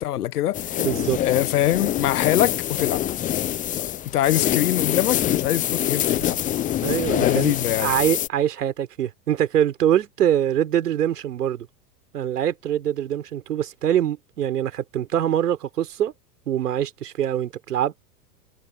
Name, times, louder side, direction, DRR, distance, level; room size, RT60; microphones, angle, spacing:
voice 1, 0.0-0.8 1.2-3.0 3.8-6.4 7.2-7.9, left 12 dB, 65° left, 1.5 m, -23 dB
sound 1, 0.5-8.3, left 12 dB, 15° left, 0.6 m, -25 dB
voice 2, 0.8-1.2 4.3-4.4 6.8-11.7 12.1-16.1 16.5-18.0, right 10 dB, 70° right, 4.0 m, -24 dB
figure-of-eight pair, 90°, 49 cm